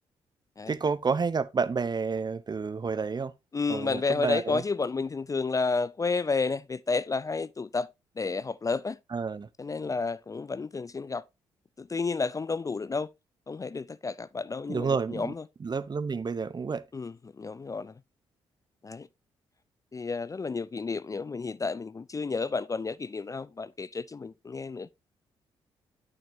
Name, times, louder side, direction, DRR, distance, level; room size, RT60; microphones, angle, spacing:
voice 1, 0.7-3.3 3.7-4.6 9.1-9.5 14.7-15.3 15.6-16.8, right 5 dB, 35° right, 0.7 m, -30 dB
voice 2, 3.5-7.9 8.2-9.0 9.6-11.2 11.8-13.1 13.5-15.4 16.9-18.0 18.8-19.1 19.9-24.9, left 4 dB, 25° left, 0.4 m, -31 dB
8.7 x 6.5 x 2.7 m
hypercardioid pair, 45°, 13 cm